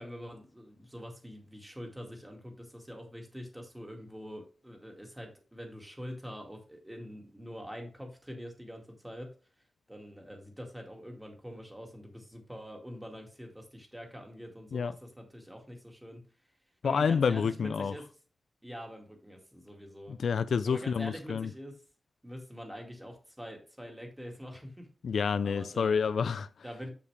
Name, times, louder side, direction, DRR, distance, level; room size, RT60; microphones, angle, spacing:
voice 1, 0.0-9.3 9.9-16.2 16.8-18.1 18.6-20.2 20.6-21.8 22.2-24.9 25.4-26.0 26.6-26.9, equal, 10° right, 2.1 m, -44 dB
voice 2, 16.8-17.9 20.1-21.5 25.0-26.5, left 6 dB, 85° left, 0.4 m, -28 dB
7.2 x 7.0 x 3.3 m
wide cardioid pair, 140°, 0 cm